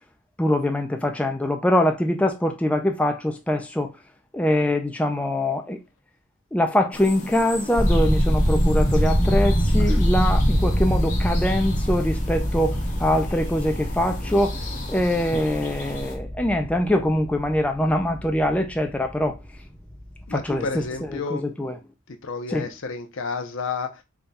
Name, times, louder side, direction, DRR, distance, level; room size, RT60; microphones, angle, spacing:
voice 1, 0.4-3.9 4.3-5.8 6.5-14.6 14.9-19.4 20.3-21.7 22.5-22.7, left 1 dB, 5° left, 0.3 m, -23 dB
sound 1, 6.9-16.2, left 2 dB, 35° left, 1.0 m, -37 dB
sound 2, 7.8-19.6 19.9-20.3 20.6-20.8, equal, 15° right, 1.0 m, -24 dB
voice 2, 20.3-21.5 22.1-24.0, left 4 dB, 65° left, 0.6 m, -31 dB
3.6 x 2.2 x 4.0 m
head